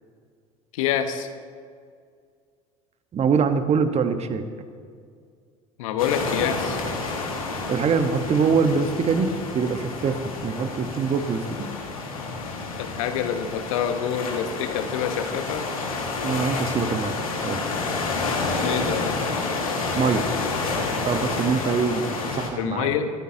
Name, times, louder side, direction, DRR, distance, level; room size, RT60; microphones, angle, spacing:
voice 1, 0.7-1.3 5.8-6.8 12.8-15.6 18.6-19.2 22.6-23.1, left 8 dB, 70° left, 8 dB, 1.2 m, -26 dB
voice 2, 3.1-4.4 7.7-9.3 9.5-11.7 16.2-17.2 17.4-17.6 19.9-20.3 21.1-22.9, right 5 dB, 35° right, 8 dB, 1.4 m, -24 dB
sound 1, 6.0-22.5, left 3 dB, 85° left, 1.9 m, -29 dB
24.5 x 14.0 x 2.9 m, 2.1 s
figure-of-eight pair, 65°, 18 cm